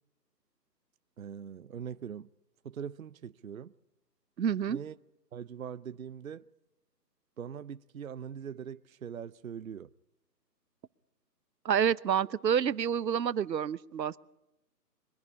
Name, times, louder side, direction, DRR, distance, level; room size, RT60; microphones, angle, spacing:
voice 1, 1.2-2.3 2.6-3.7 4.7-5.0 5.3-6.5 7.4-9.9, right 8 dB, 55° right, 0.6 m, -42 dB
voice 2, 4.4-4.8 11.6-14.2, right 8 dB, 85° right, 0.9 m, -28 dB
23.5 x 11.5 x 9.8 m
hypercardioid pair, 170°, 50 cm